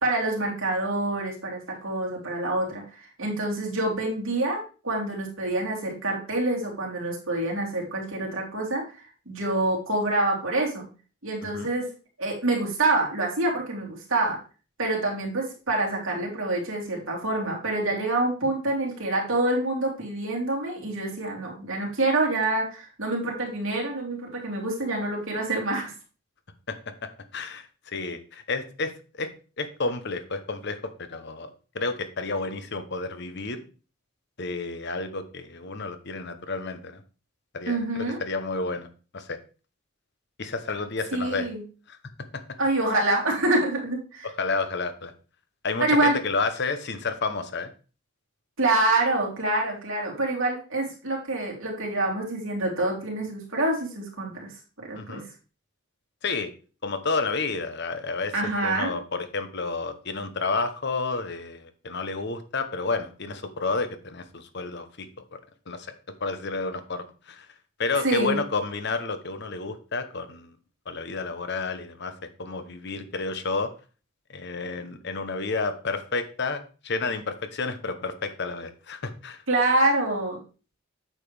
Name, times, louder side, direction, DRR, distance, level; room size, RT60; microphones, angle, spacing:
voice 1, 0.0-8.8 9.3-10.9 11.2-11.9 12.2-14.4 14.8-25.9 37.7-38.2 41.1-41.6 42.6-44.3 45.8-46.2 48.6-54.5 54.8-55.2 58.3-58.9 68.0-68.4 79.5-80.4, right 2 dB, 70° right, -2 dB, 3.0 m, -26 dB
voice 2, 27.3-28.9 29.2-29.3 29.6-30.8 31.1-31.5 31.7-33.6 34.4-37.0 37.5-38.9 39.1-39.4 40.4-41.5 41.9-42.0 44.4-45.1 45.6-47.7 54.9-55.2 56.2-56.5 56.8-58.3 58.6-65.1 65.7-65.9 66.2-67.5 67.8-70.5 70.9-72.1 72.4-73.7 74.3-79.4, left 3 dB, 55° left, 10 dB, 0.9 m, -30 dB
8.8 x 6.7 x 3.4 m, 0.36 s
head